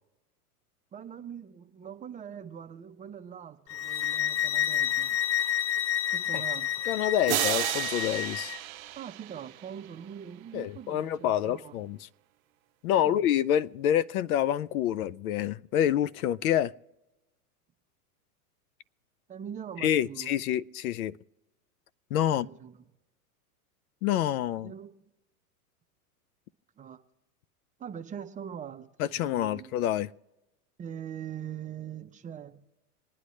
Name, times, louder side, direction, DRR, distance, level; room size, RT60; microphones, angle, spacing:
voice 1, 0.9-5.2 6.1-6.7 8.9-11.8 13.0-13.2 19.3-20.3 22.2-22.8 24.6-24.9 26.8-27.0 27.8-28.9 29.2-29.7 30.8-32.6, right 9 dB, 15° right, 0.9 m, -42 dB
sound 1, 3.7-8.6, left 10 dB, 30° left, 0.6 m, -29 dB
voice 2, 6.9-8.5 10.5-12.0 12.8-16.7 19.8-21.1 22.1-22.5 24.0-24.7 29.0-30.1, left 11 dB, 70° left, 0.7 m, -27 dB
sound 2, 7.3-10.1, right 17 dB, 65° right, 0.7 m, -33 dB
27.5 x 9.9 x 3.2 m
hypercardioid pair, 120°, 45 cm